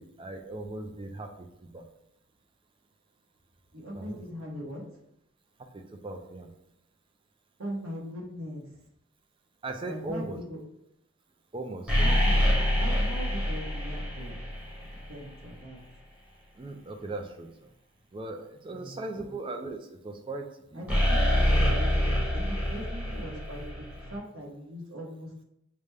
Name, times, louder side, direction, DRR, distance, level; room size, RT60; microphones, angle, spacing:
voice 1, 0.0-1.9 3.9-4.2 5.6-6.5 9.6-10.4 11.5-12.2 16.6-17.7 18.1-20.9, right 2 dB, 25° right, 4 dB, 0.3 m, -39 dB
voice 2, 3.7-4.8 7.6-8.7 9.8-10.6 12.0-14.4 15.1-15.8 18.7-19.3 20.7-25.3, equal, 70° right, -2 dB, 1.1 m, -40 dB
sound 1, 11.9-15.1 20.9-24.2, equal, 5° right, 0.9 m, -26 dB
5.0 x 2.1 x 3.3 m, 0.79 s
head